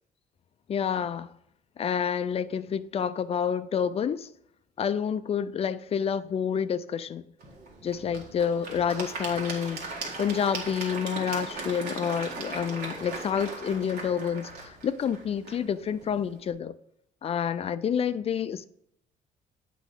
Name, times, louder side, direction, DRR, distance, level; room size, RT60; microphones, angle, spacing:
voice 1, 0.7-1.3 1.8-4.3 4.8-7.2 7.8-9.8 10.2-16.7 17.2-18.7, left 7 dB, 35° left, 0.4 m, -28 dB
Applause / Crowd, 7.4-16.5, right 3 dB, 70° right, 1.8 m, -38 dB
8.1 x 4.9 x 3.7 m
cardioid pair, 110°, 17 cm